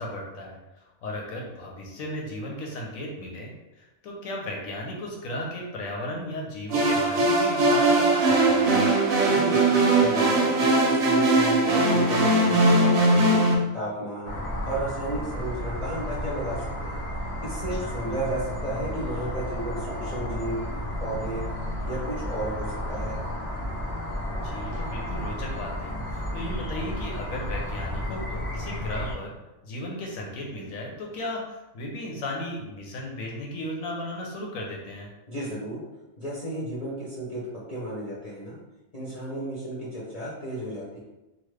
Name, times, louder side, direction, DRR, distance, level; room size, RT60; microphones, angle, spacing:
voice 1, 0.0-8.9 17.8-17.9 24.4-29.3 29.6-35.1, left 1 dB, 80° left, -1 dB, 1.1 m, -35 dB
sound 1, 6.7-13.5, right 2 dB, 65° right, 0.8 m, -20 dB
voice 2, 9.3-13.4 13.7-14.3 14.7-17.0 17.4-20.6 21.0-21.4 21.9-23.2 35.3-35.8 36.2-38.6 38.9-41.0, right 1 dB, 35° left, -8 dB, 0.7 m, -33 dB
sound 2, 14.2-29.1, equal, 60° left, 0.3 m, -32 dB
3.0 x 2.1 x 3.2 m, 1.0 s
omnidirectional pair, 1.4 m